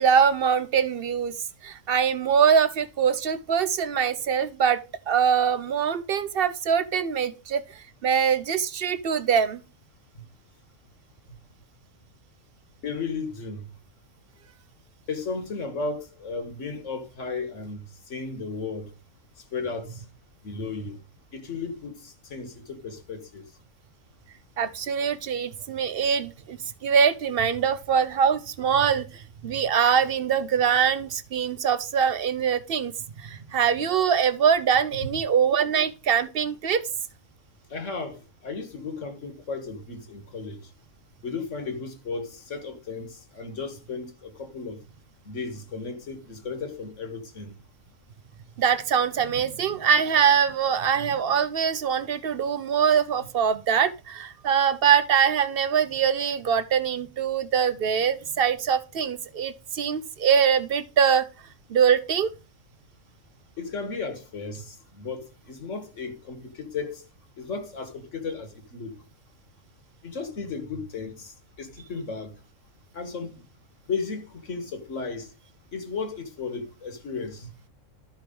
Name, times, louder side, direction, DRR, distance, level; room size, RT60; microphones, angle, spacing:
voice 1, 0.0-1.3 1.6-9.6 24.6-32.9 33.2-36.8 48.6-61.3 61.7-62.3, right 7 dB, 60° right, 0.6 m, -23 dB
voice 2, 12.8-13.7 15.1-18.9 19.5-20.0 20.4-21.0 21.3-23.4 37.7-40.6 41.2-44.8 45.3-47.6 63.6-67.0 67.4-69.0 70.0-72.3 72.9-73.3 73.9-75.3 75.7-77.5, left 4 dB, 60° left, 1.7 m, -34 dB
12.5 x 4.6 x 5.2 m
omnidirectional pair, 1.5 m